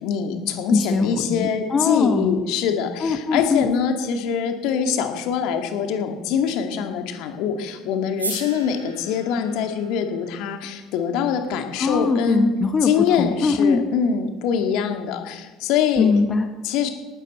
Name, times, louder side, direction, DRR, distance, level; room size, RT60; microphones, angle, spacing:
voice 1, 0.0-2.9 3.3-7.5 7.9-8.8 9.1-12.5 12.8-15.2 15.7-16.1 16.7-16.9, left 7 dB, 55° left, 6 dB, 2.0 m, -23 dB
voice 2, 0.7-2.4 3.0-3.7 11.8-13.8 16.0-16.5, left 4 dB, 30° left, 7 dB, 1.1 m, -21 dB
sound 1, 8.2-12.4, right 2 dB, 85° right, 3.0 m, -38 dB
18.5 x 13.5 x 4.3 m, 1.2 s
figure-of-eight pair, 60°, 0 cm